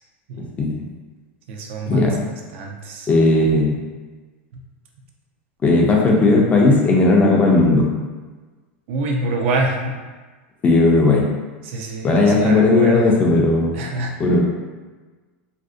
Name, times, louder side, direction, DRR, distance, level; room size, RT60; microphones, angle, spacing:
voice 1, 1.5-3.1 8.9-9.9 11.6-13.1 13.7-14.1, right 2 dB, 70° right, 1 dB, 0.4 m, -26 dB
voice 2, 3.1-3.7 5.6-7.9 10.6-11.3 12.0-13.7 14.2-14.4, left 2 dB, 20° left, -2 dB, 0.4 m, -15 dB
2.5 x 2.0 x 2.5 m, 1.3 s
supercardioid pair, 125°, 7 cm